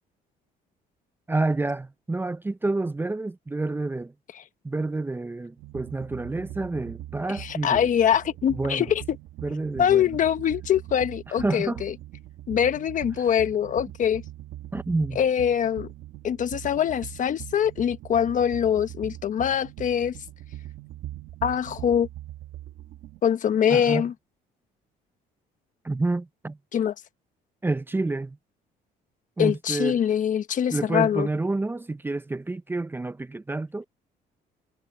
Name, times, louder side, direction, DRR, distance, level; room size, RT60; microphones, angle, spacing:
voice 1, 1.3-4.1 4.6-7.9 8.6-8.9 9.4-10.1 11.4-11.8 14.7-15.2 23.7-24.1 25.8-26.6 27.6-28.4 29.4-30.0 30.7-33.9, right 2 dB, 10° right, 0.7 m, -28 dB
sound 1, 5.6-23.2, right 14 dB, 75° right, 1.5 m, -41 dB
voice 2, 7.4-9.0 9.8-11.9 12.5-14.2 15.1-15.9 16.2-20.2 21.4-22.1 23.2-24.1 26.7-26.9 29.4-31.3, left 9 dB, 50° left, 1.4 m, -23 dB
cardioid pair, 110°, 17 cm